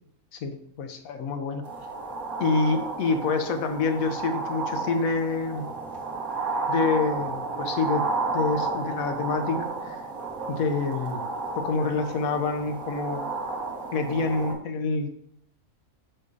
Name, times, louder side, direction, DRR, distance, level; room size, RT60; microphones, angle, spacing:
voice 1, 0.3-1.6 2.4-5.6 6.7-8.0 8.3-10.0 10.5-11.2 11.5-13.3 13.9-15.2, left 4 dB, 75° left, 7 dB, 1.3 m, -27 dB
sound 1, 1.6-14.5, right 3 dB, 70° right, 2.3 m, -32 dB
6.5 x 6.4 x 3.9 m, 0.73 s
omnidirectional pair, 1.5 m